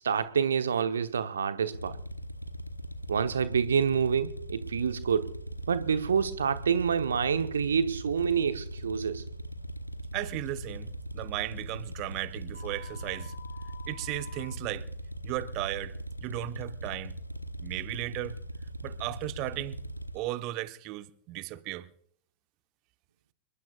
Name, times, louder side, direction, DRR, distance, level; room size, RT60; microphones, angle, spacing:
voice 1, 0.0-2.0 3.1-5.3 5.7-9.2, right 7 dB, 70° right, 0.9 m, -27 dB
sound 1, 1.7-20.2, equal, 90° right, 1.0 m, -40 dB
voice 2, 10.1-13.3 13.9-14.9 15.2-16.0 16.2-17.1 17.6-18.4 18.8-19.8 20.1-21.9, right 16 dB, 40° right, 1.0 m, -35 dB
sound 2, 12.5-14.5, left 9 dB, 80° left, 4.4 m, -49 dB
28.0 x 21.5 x 2.4 m
figure-of-eight pair, 90°, 0 cm